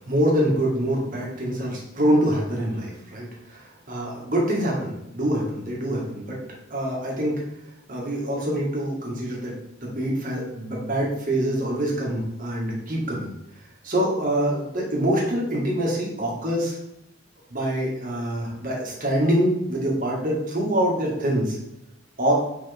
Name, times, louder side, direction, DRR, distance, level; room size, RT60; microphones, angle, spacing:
voice 1, 0.0-6.4 6.7-7.4 7.9-9.5 9.8-13.3 13.8-16.8 17.5-21.6 22.2-22.3, right 1 dB, 40° right, -3 dB, 1.8 m, -25 dB
7.1 x 5.1 x 3.5 m, 0.88 s
head